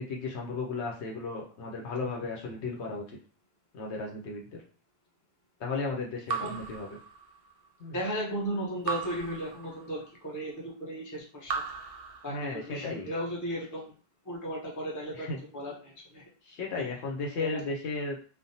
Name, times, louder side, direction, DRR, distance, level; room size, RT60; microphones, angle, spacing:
voice 1, 0.0-3.0 3.7-4.6 5.6-7.0 7.8-8.0 12.3-13.1 15.1-15.4 16.5-18.2, left 3 dB, 65° left, 0 dB, 0.9 m, -35 dB
Raindrop / Drip, 6.3-7.7 8.9-10.2 11.4-12.9, right 5 dB, 60° right, 0.7 m, -37 dB
voice 2, 7.9-11.6 12.2-13.9 14.2-16.2 16.8-16.9 17.4-17.7, equal, 20° left, -3 dB, 0.6 m, -36 dB
3.3 x 2.0 x 2.7 m, 0.39 s
omnidirectional pair, 1.2 m